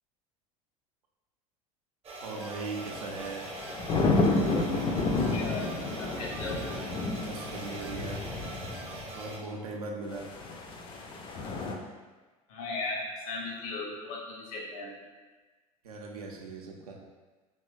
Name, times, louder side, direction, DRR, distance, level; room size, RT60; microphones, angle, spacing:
sound 1, 2.0-9.4, right 2 dB, 30° right, 0.6 m, -42 dB
voice 1, 2.2-3.5 7.2-8.3 9.1-10.3 15.8-17.0, right 3 dB, 80° right, 0 dB, 0.5 m, -39 dB
sound 2, 2.8-9.1 10.1-11.7, left 3 dB, 25° left, 0.3 m, -30 dB
voice 2, 5.3-6.6 12.5-15.0, left 3 dB, 65° left, -1 dB, 0.7 m, -37 dB
2.8 x 2.2 x 2.4 m, 1.3 s
hypercardioid pair, 75°, 19 cm